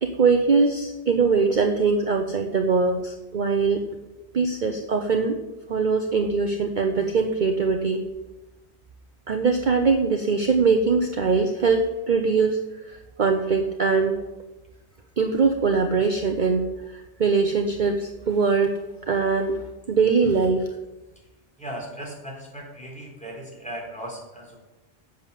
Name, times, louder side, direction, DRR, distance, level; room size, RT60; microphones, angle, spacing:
voice 1, 0.0-3.8 4.3-5.4 5.7-8.0 9.3-14.2 15.2-18.8 19.1-19.6 19.9-20.7, right 4 dB, 45° right, 4 dB, 1.0 m, -22 dB
voice 2, 21.6-24.6, right 1 dB, 5° left, -2 dB, 4.1 m, -37 dB
11.0 x 7.4 x 8.4 m, 1.1 s
omnidirectional pair, 1.1 m